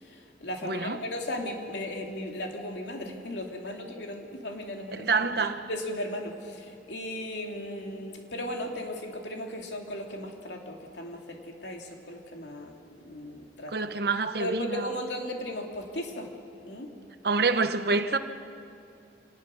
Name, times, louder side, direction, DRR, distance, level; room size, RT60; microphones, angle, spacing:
voice 1, 0.0-5.1 5.4-13.7 14.4-16.3 16.6-16.9, left 1 dB, 85° left, 2 dB, 2.6 m, -36 dB
voice 2, 0.6-1.0 4.9-5.6 13.7-14.9 17.2-18.2, right 4 dB, 60° right, 9 dB, 1.0 m, -27 dB
26.0 x 19.0 x 6.4 m, 2.5 s
head